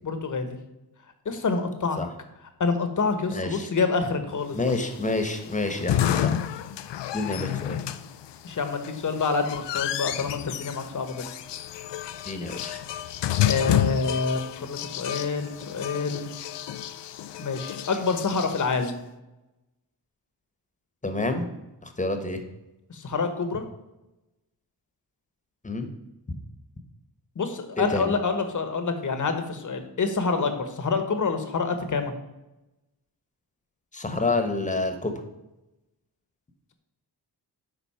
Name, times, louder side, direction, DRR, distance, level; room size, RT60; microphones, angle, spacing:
voice 1, 0.0-0.6 1.2-2.0 2.6-4.7 8.4-11.2 13.3-16.3 17.4-19.0 22.9-23.6 27.3-32.1, left 4 dB, 45° left, 8 dB, 1.2 m, -27 dB
voice 2, 3.3-3.7 4.5-6.4 7.1-7.8 12.3-12.8 21.0-21.5 22.0-22.4 25.6-25.9 26.3-26.4 27.8-28.1 33.9-35.1, left 2 dB, 20° left, 7 dB, 1.2 m, -28 dB
sound 1, 4.6-18.9, left 11 dB, 85° left, 0.6 m, -30 dB
10.5 x 4.0 x 5.7 m, 0.98 s
cardioid pair, 95°, 42 cm